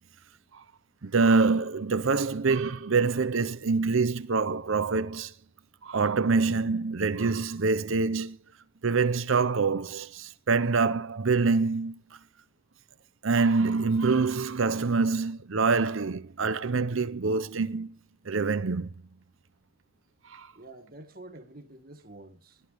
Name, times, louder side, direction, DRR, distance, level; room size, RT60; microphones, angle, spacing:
voice 1, 1.0-5.3 5.8-8.4 8.8-12.0 13.2-17.9 18.3-18.9 20.2-20.5, right 4 dB, 60° right, 0.7 m, -25 dB
voice 2, 20.6-22.6, right 2 dB, 40° right, 1.8 m, -48 dB
21.0 x 13.0 x 3.5 m
head